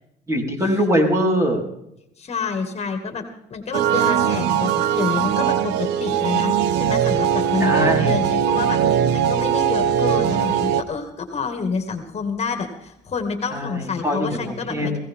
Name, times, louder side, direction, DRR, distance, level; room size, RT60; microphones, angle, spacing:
voice 1, 0.3-1.6 7.6-8.2 13.5-15.0, equal, 15° right, 1 dB, 4.8 m, -22 dB
voice 2, 2.2-15.0, left 5 dB, 40° left, 6 dB, 2.3 m, -28 dB
sound 1, 3.7-10.8, right 9 dB, 90° right, 1.1 m, -20 dB
21.0 x 17.0 x 3.8 m, 0.81 s
cardioid pair, 110°, 17 cm